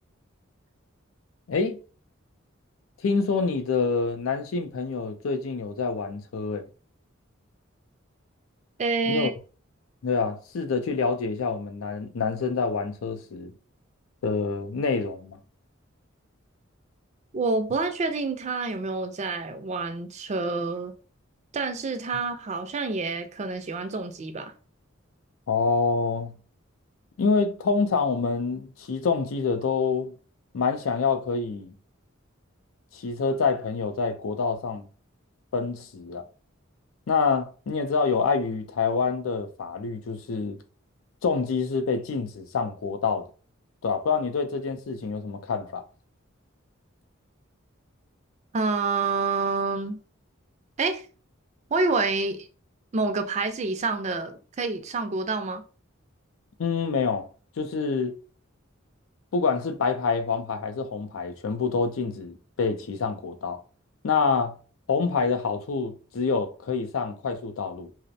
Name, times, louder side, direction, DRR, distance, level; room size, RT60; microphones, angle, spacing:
voice 1, 1.5-1.8 3.0-6.7 9.1-9.3 10.0-13.5 14.2-15.4 25.5-26.3 27.2-30.1 30.5-31.7 32.9-34.9 35.5-36.2 37.1-40.6 41.2-43.3 43.8-45.8 56.6-57.3 57.6-58.2 59.3-63.6 64.0-64.6 64.9-67.9, left 4 dB, 85° left, 0.4 m, -26 dB
voice 2, 8.8-9.3 17.3-20.9 21.5-24.5 48.5-50.0 50.8-51.1 51.7-52.5 52.9-55.6, right 3 dB, 35° right, 0.4 m, -28 dB
2.4 x 2.0 x 2.6 m
head